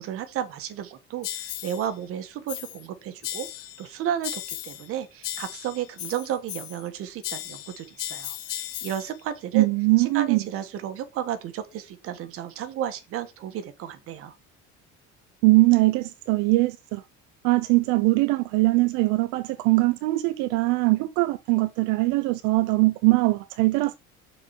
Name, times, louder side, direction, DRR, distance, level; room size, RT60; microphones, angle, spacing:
voice 1, 0.0-3.5 3.8-9.7 10.0-14.3, right 10 dB, 50° right, 1.5 m, -33 dB
sound 1, 1.2-1.9 2.5-2.9 3.2-3.9 4.2-4.9 5.2-6.9 7.2-9.1, left 14 dB, 50° left, 0.9 m, -36 dB
voice 2, 9.5-10.4 15.4-17.0 17.4-23.9, right 21 dB, 80° right, 0.7 m, -21 dB
6.8 x 4.7 x 5.2 m
cardioid pair, 160°, 30 cm